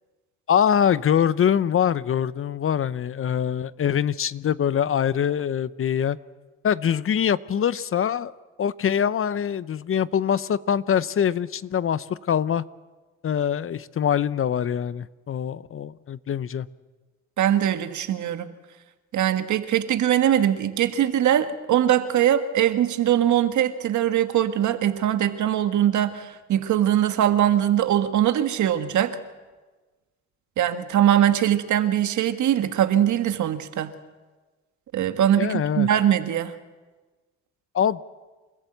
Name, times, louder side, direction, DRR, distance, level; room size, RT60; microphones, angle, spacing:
voice 1, 0.5-6.2 6.6-8.3 8.6-12.6 13.2-16.7 35.4-35.9 37.7-38.0, left 8 dB, 45° left, 18 dB, 0.7 m, -23 dB
voice 2, 17.4-18.5 19.1-29.2 30.6-33.9 34.9-36.5, right 11 dB, 70° right, 9 dB, 1.6 m, -21 dB
28.5 x 14.5 x 8.0 m, 1.3 s
cardioid pair, 80°, 30 cm